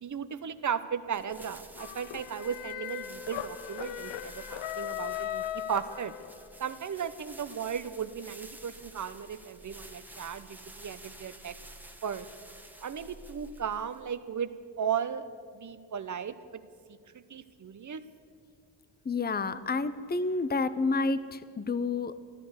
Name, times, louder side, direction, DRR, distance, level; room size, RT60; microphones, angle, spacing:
voice 1, 0.0-6.1 6.6-11.6 12.0-12.3 12.8-15.3 15.5-16.6 16.9-18.0, right 7 dB, 40° right, 11 dB, 1.0 m, -36 dB
sound 1, 1.1-14.3, right 1 dB, 5° right, 1.4 m, -51 dB
sound 2, 1.8-6.6, left 12 dB, 75° left, 0.8 m, -38 dB
voice 2, 19.0-22.2, left 3 dB, 20° left, 14 dB, 0.7 m, -29 dB
14.5 x 11.5 x 8.0 m, 2.2 s
cardioid pair, 65°, 46 cm